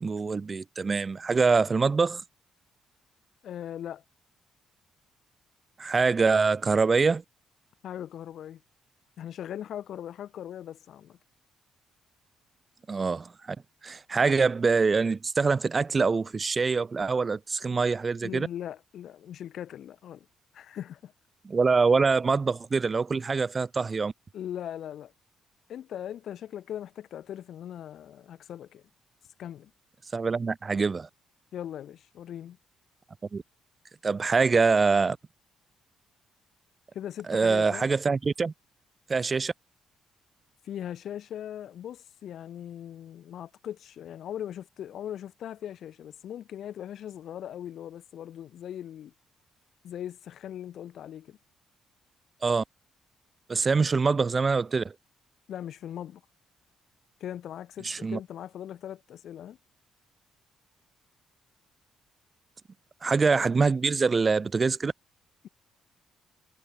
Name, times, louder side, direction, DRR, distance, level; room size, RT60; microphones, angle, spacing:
voice 1, 0.0-2.2 5.8-7.2 12.9-13.6 13.8-18.5 21.5-24.1 30.1-31.1 33.3-33.4 34.0-35.2 37.3-38.5 39.1-39.5 52.4-52.6 53.5-54.9 57.8-58.2 63.0-64.9, right 4 dB, 35° right, 0.6 m, -24 dB
voice 2, 3.4-4.0 7.8-8.6 9.2-11.2 18.2-20.3 20.5-21.1 24.3-25.1 25.7-28.8 29.4-29.7 31.5-32.6 36.9-37.9 40.6-49.1 49.8-51.4 55.5-56.2 57.2-59.6, left 10 dB, 70° left, 3.9 m, -39 dB
cardioid pair, 90°, 0 cm